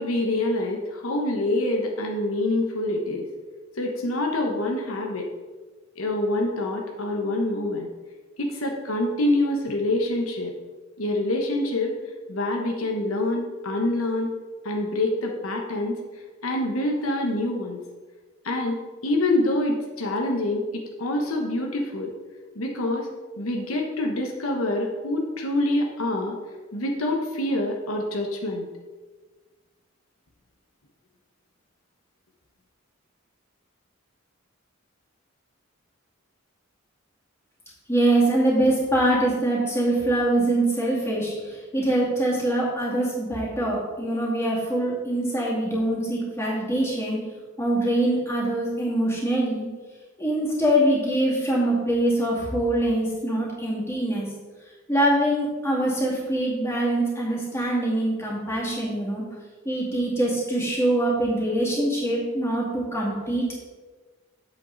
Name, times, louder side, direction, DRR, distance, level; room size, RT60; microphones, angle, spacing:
voice 1, 0.0-3.3 3.8-5.3 6.0-7.9 8.4-10.5 11.0-11.9 12.3-14.3 14.6-16.0 16.4-17.8 18.4-22.1 22.5-23.1 23.4-26.4 26.7-28.7, left 1 dB, 85° left, 1 dB, 1.2 m, -26 dB
voice 2, 37.9-47.2 47.6-49.7 50.2-54.3 54.9-59.2 59.6-63.6, right 1 dB, 10° left, -5 dB, 2.4 m, -24 dB
8.2 x 7.5 x 4.0 m, 1.3 s
head